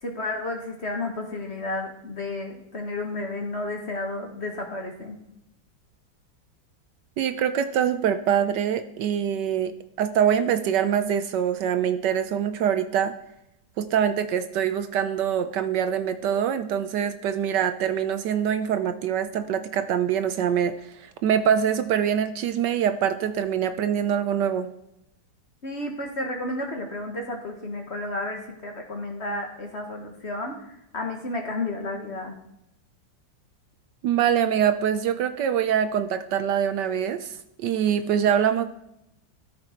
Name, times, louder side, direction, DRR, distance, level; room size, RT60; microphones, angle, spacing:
voice 1, 0.0-5.2 25.6-32.4, left 2 dB, 40° left, 2 dB, 1.4 m, -32 dB
voice 2, 7.2-13.1 13.8-24.7 34.0-38.6, right 8 dB, 70° right, 10 dB, 1.2 m, -24 dB
14.0 x 6.0 x 4.4 m, 0.83 s
omnidirectional pair, 2.1 m